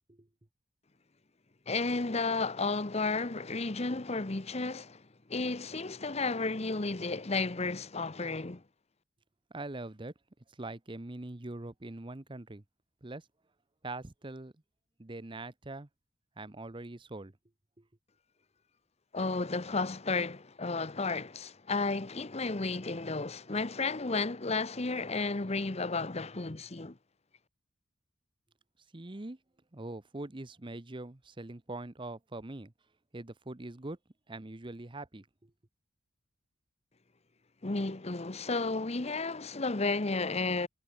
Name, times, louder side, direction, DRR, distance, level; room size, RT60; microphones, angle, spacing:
voice 1, 1.7-5.0 5.3-8.6 19.1-27.0 37.6-40.7, left 3 dB, 30° left, 0.9 m, -32 dB
voice 2, 9.5-10.1 10.5-12.6 13.0-13.3 13.8-14.5 15.0-15.9 16.4-17.3 17.8-17.9 28.9-29.4 29.7-32.7 33.1-34.0 34.3-35.5, right 2 dB, 25° right, 0.9 m, -43 dB
head